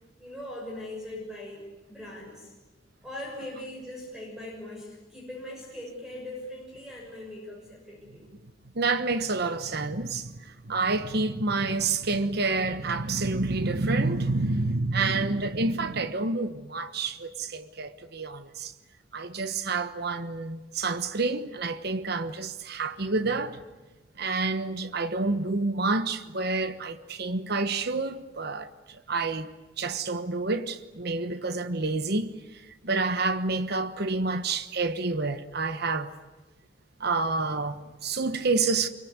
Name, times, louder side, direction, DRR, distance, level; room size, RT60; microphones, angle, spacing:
voice 1, 0.2-1.6 1.9-2.5 3.0-8.3, left 1 dB, 5° right, 6.5 m, -40 dB
voice 2, 8.7-18.7 19.1-23.6 24.2-36.1 37.0-38.9, right 3 dB, 55° right, 1.2 m, -28 dB
26.0 x 23.5 x 9.7 m
head